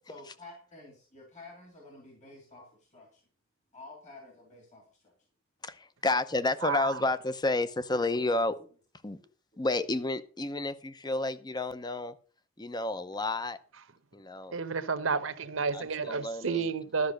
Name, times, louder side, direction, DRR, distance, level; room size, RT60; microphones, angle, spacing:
voice 1, 0.1-3.3 3.7-5.1 9.2-9.3, left 2 dB, 35° left, 2.9 m, -51 dB
voice 2, 5.6-8.6 9.0-9.2 9.6-12.1 12.6-13.6 14.1-14.6 15.7-16.6, left 2 dB, 20° left, 0.7 m, -31 dB
voice 3, 6.6-7.0 14.5-17.1, right 5 dB, 75° right, 1.0 m, -31 dB
12.5 x 5.9 x 6.5 m
head